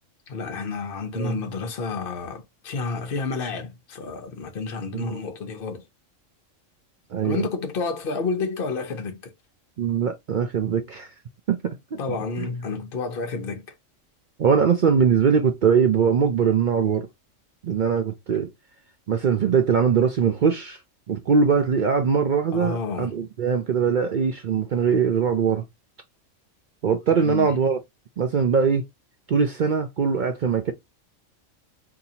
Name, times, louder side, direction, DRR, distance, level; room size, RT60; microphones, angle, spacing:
voice 1, 0.3-5.8 7.2-9.3 12.0-13.6 22.5-23.1 27.1-27.6, left 4 dB, 50° left, 0.9 m, -30 dB
voice 2, 7.1-7.5 9.8-11.1 11.5-12.0 12.4-12.5 14.4-17.1 17.6-18.5 19.1-20.8 21.1-25.6 26.8-27.8 28.2-28.8 29.3-30.7, right 6 dB, 65° right, 0.5 m, -21 dB
4.0 x 2.7 x 2.8 m
omnidirectional pair, 1.4 m